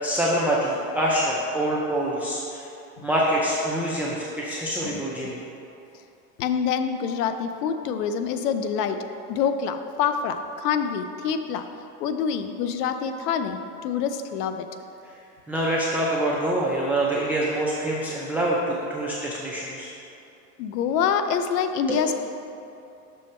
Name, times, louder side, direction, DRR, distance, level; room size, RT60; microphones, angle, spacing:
voice 1, 0.0-2.7 3.0-5.4 15.0-15.2 15.5-19.9 21.9-22.0, right 1 dB, 5° right, -5 dB, 0.4 m, -25 dB
voice 2, 6.4-9.0 9.3-11.7 12.0-14.6 20.6-22.2, left 7 dB, 80° left, 9 dB, 0.7 m, -26 dB
6.3 x 5.6 x 4.3 m, 2.7 s
supercardioid pair, 115°, 47 cm